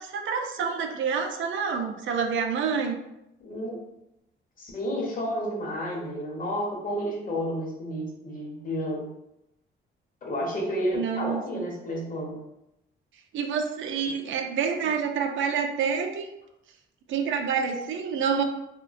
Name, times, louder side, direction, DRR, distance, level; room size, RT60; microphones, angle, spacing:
voice 1, 0.0-3.0 10.9-11.6 13.3-16.3 17.1-18.4, right 6 dB, 65° right, 5 dB, 0.4 m, -28 dB
voice 2, 3.4-3.8 4.6-9.1 10.2-12.4, equal, 40° left, -2 dB, 0.8 m, -31 dB
2.5 x 2.1 x 2.5 m, 0.86 s
cardioid pair, 115°, 21 cm